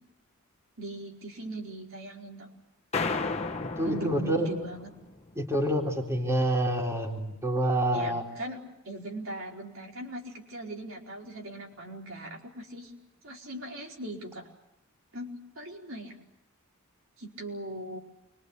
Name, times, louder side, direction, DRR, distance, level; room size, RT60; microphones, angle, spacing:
voice 1, 0.8-2.5 3.8-4.9 7.9-8.6 8.8-12.9 13.2-14.5 15.1-16.1 17.2-18.0, right 1 dB, 65° right, -1 dB, 4.8 m, -40 dB
sound 1, 2.9-5.3, left 4 dB, 30° left, 1.7 m, -33 dB
voice 2, 3.8-4.5 5.4-8.2, right 1 dB, 15° right, 0 dB, 3.8 m, -27 dB
29.0 x 23.5 x 8.3 m, 0.84 s
head